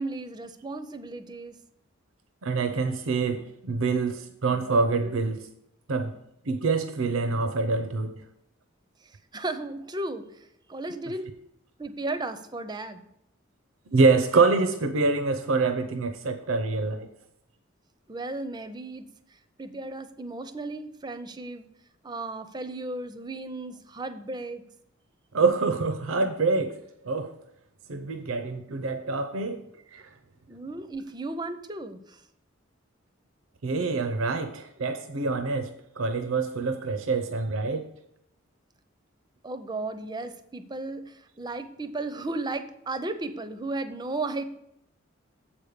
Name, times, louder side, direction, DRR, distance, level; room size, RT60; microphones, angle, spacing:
voice 1, 0.0-1.6 9.0-11.3 11.8-13.1 18.1-21.7 22.0-24.6 30.5-32.2 39.4-44.4, right 2 dB, 20° right, 10 dB, 0.5 m, -35 dB
voice 2, 2.4-5.5 5.9-6.1 6.4-8.2 13.9-17.1 25.3-27.3 27.9-30.1 33.6-37.9, right 4 dB, 85° right, 8 dB, 0.6 m, -26 dB
7.4 x 5.2 x 6.6 m, 0.77 s
head